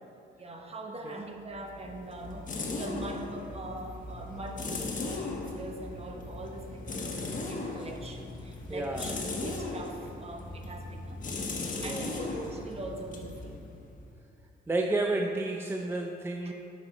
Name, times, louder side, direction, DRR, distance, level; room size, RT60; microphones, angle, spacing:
voice 1, 0.4-11.2 11.8-13.6 16.4-16.5, right 2 dB, 30° right, 3 dB, 1.0 m, -42 dB
sound 1, 1.5-14.2, left 3 dB, 40° left, 1.2 m, -38 dB
voice 2, 8.7-9.1 11.8-12.1 14.7-16.5, right 2 dB, 10° right, 2 dB, 0.5 m, -31 dB
9.7 x 5.7 x 3.9 m, 2.5 s
cardioid pair, 90°, 20 cm